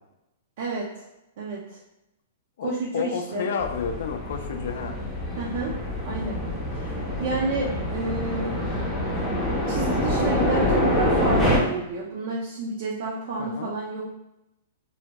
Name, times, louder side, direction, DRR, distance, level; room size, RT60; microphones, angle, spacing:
voice 1, 0.6-1.0 1.4-1.8 2.6-3.5 5.4-5.8 6.0-6.4 6.8-6.9 7.2-8.7 9.7-14.1, right 3 dB, 55° right, -3 dB, 0.5 m, -30 dB
voice 2, 2.6-4.9 13.4-13.7, left 6 dB, 65° left, 6 dB, 0.3 m, -30 dB
sound 1, 3.6-11.6, left 1 dB, 5° left, 0.5 m, -26 dB
2.7 x 2.1 x 2.9 m, 0.90 s
hypercardioid pair, 160°, 0 cm